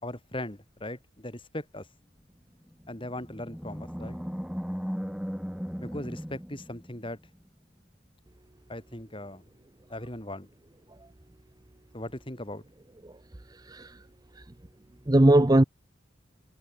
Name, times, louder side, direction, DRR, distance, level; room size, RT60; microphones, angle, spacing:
voice 1, 0.0-1.9 2.9-4.2 5.8-7.2 8.7-9.4 9.9-10.5 11.9-12.6, left 1 dB, 25° left, 5.1 m, -38 dB
Animal, 2.7-7.3, equal, 5° right, 1.9 m, -37 dB
voice 2, 13.5-14.0 14.4-14.5 15.1-15.6, right 1 dB, 20° right, 0.7 m, -21 dB
head